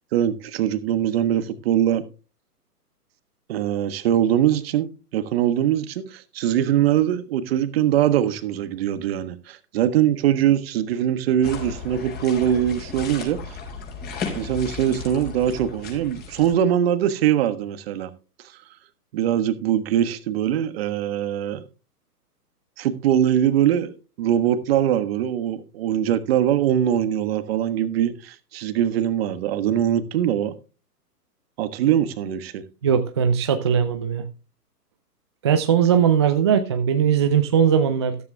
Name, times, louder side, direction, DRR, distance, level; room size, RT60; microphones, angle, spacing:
voice 1, 0.1-2.0 3.5-13.4 14.3-18.1 19.1-21.6 22.8-30.5 31.6-32.6, right 10 dB, 40° right, 1.4 m, -22 dB
sound 1, 11.4-16.5, left 5 dB, 20° left, 4.6 m, -34 dB
voice 2, 32.8-34.2 35.4-38.2, right 8 dB, 20° right, 0.4 m, -19 dB
14.0 x 13.5 x 2.2 m
hypercardioid pair, 130°, 48 cm